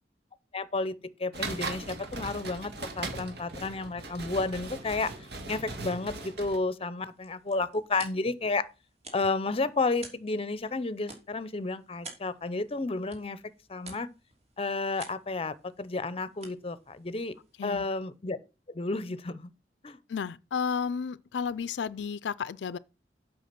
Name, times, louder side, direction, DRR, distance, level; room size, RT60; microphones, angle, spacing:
voice 1, 0.5-5.1 5.5-8.6 9.1-13.4 13.7-14.1 14.6-17.3 17.6-18.4 18.7-19.5 19.8-20.0, left 3 dB, 35° left, 0.7 m, -31 dB
sound 1, 1.3-6.6, right 3 dB, 65° right, 1.8 m, -39 dB
sound 2, 6.9-18.1, right 3 dB, 40° right, 3.0 m, -52 dB
voice 2, 20.1-22.8, left 6 dB, 85° left, 0.4 m, -32 dB
8.3 x 5.8 x 5.8 m
head